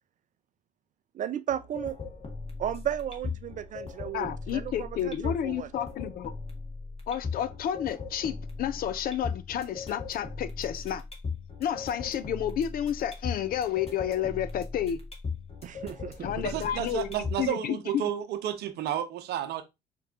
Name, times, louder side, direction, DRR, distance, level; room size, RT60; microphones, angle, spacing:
voice 1, 1.2-2.0 2.6-5.7 15.6-16.3, right 10 dB, 45° right, 0.4 m, -34 dB
sound 1, 1.5-17.5, left 4 dB, 35° left, 1.7 m, -39 dB
voice 2, 4.1-6.3 7.1-11.0 11.6-15.0 16.2-17.1 17.4-18.1, left 10 dB, 55° left, 0.5 m, -31 dB
voice 3, 16.4-19.6, right 11 dB, 60° right, 0.8 m, -32 dB
4.4 x 3.0 x 3.7 m
hypercardioid pair, 55°, 18 cm